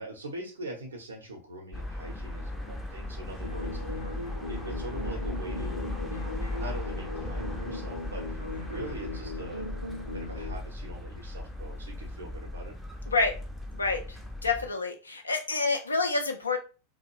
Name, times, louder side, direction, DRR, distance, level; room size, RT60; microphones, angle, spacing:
voice 1, 0.0-3.8 4.5-5.9 6.5-9.8 10.1-12.7, right 1 dB, 70° right, 1 dB, 0.8 m, -42 dB
sound 1, 1.7-14.7, left 1 dB, ahead, 0.5 m, -37 dB
sound 2, 3.4-10.6, left 2 dB, 90° right, 0.4 m, -38 dB
voice 2, 13.1-13.4 13.8-14.0 14.4-16.6, left 3 dB, 80° left, 4 dB, 0.3 m, -27 dB
2.4 x 2.0 x 3.0 m, 0.33 s
figure-of-eight pair, 90°, 0 cm